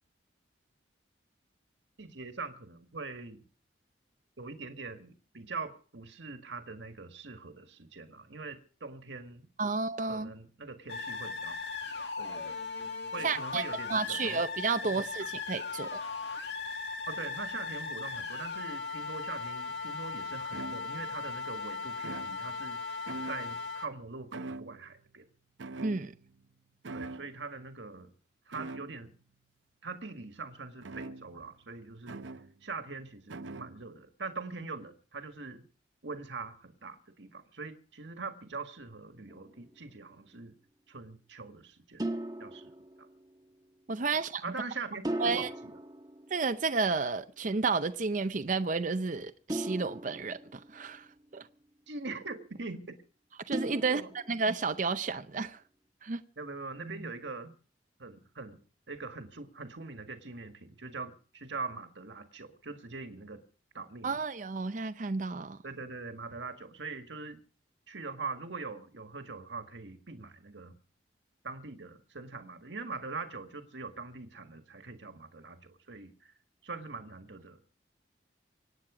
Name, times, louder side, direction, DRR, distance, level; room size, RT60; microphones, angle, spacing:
voice 1, 2.0-3.4 4.4-9.5 10.0-11.5 12.2-12.7 13.1-14.4 14.8-15.3 17.1-23.0 23.3-25.2 26.9-28.1 28.5-29.1 29.8-32.2 32.6-35.7 36.0-40.5 40.9-42.1 42.4-42.7 43.0-43.1 44.1-45.8 51.9-53.0 53.8-54.1 56.4-57.5 58.0-58.6 58.9-63.4 63.7-64.2 65.6-67.4 67.9-70.7 71.4-76.3 76.6-77.7, right 4 dB, 75° right, 1.7 m, -42 dB
voice 2, 9.6-10.3 13.2-13.6 13.9-16.0 25.8-26.1 43.9-44.4 45.2-45.5 46.3-51.1 51.3-51.5 53.5-54.0 54.3-55.6 56.0-56.2 64.0-65.6, right 4 dB, 45° right, 0.6 m, -31 dB
sound 1, 10.9-23.9, left 4 dB, 70° left, 1.9 m, -38 dB
sound 2, 19.8-19.9 20.5-21.2 22.0-22.8 23.1-23.8 24.3-25.1 25.6-26.5 26.8-27.4 28.5-29.1 30.8-31.5 32.1-32.6 33.3-33.9, right 3 dB, 90° right, 0.8 m, -43 dB
sound 3, 39.3-39.8 42.0-43.5 45.0-47.0 49.5-51.2 53.5-54.7, right 1 dB, 20° right, 1.2 m, -39 dB
25.0 x 9.2 x 5.0 m
head